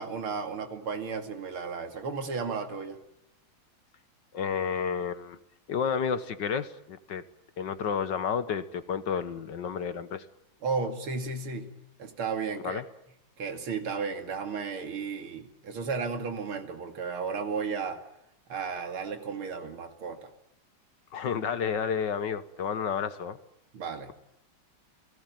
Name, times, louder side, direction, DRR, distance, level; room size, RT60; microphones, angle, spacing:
voice 1, 0.0-3.0 10.6-11.7 12.0-12.8 13.4-18.0 18.5-20.3 23.7-24.1, right 5 dB, 80° right, 7 dB, 3.3 m, -34 dB
voice 2, 4.3-5.4 5.7-7.2 7.6-10.3 12.6-12.8 21.1-23.4, left 7 dB, 60° left, 13 dB, 1.8 m, -31 dB
29.5 x 18.5 x 9.3 m, 0.82 s
omnidirectional pair, 2.3 m